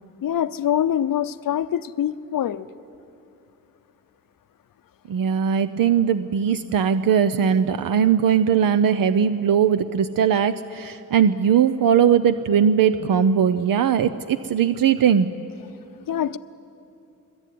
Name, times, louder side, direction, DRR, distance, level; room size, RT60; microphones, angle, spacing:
voice 1, 0.2-2.7 16.1-16.4, left 10 dB, 75° left, 14 dB, 0.8 m, -24 dB
voice 2, 5.1-15.3, right 8 dB, 80° right, 11 dB, 0.7 m, -19 dB
22.5 x 21.5 x 9.3 m, 2.8 s
cardioid pair, 70°, 34 cm